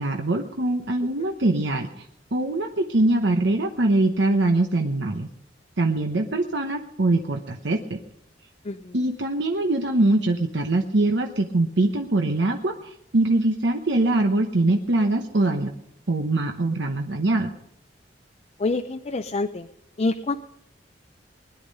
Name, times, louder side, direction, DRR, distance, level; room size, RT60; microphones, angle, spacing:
voice 1, 0.0-2.1 2.3-5.3 5.8-8.0 8.9-15.7 16.1-17.5, right 2 dB, 70° right, 4 dB, 1.0 m, -23 dB
voice 2, 8.6-9.0 18.6-19.7 20.0-20.4, left 3 dB, 35° left, 7 dB, 0.5 m, -26 dB
20.5 x 10.5 x 5.4 m, 0.75 s
head